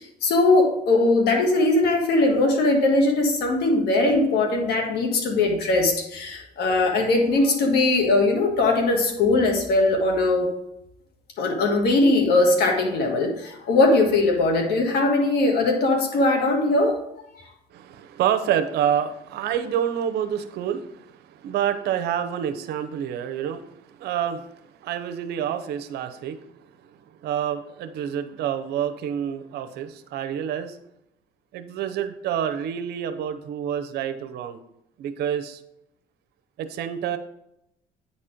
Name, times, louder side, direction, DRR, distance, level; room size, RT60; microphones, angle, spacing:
voice 1, 0.0-10.5 11.4-17.0, left 2 dB, 75° left, 3 dB, 1.7 m, -20 dB
voice 2, 17.7-24.5 24.8-26.5 26.8-30.8 31.5-34.6 35.0-35.6 36.6-37.2, right 9 dB, 75° right, 10 dB, 0.8 m, -28 dB
9.1 x 4.3 x 5.1 m, 0.80 s
cardioid pair, 110°, 17 cm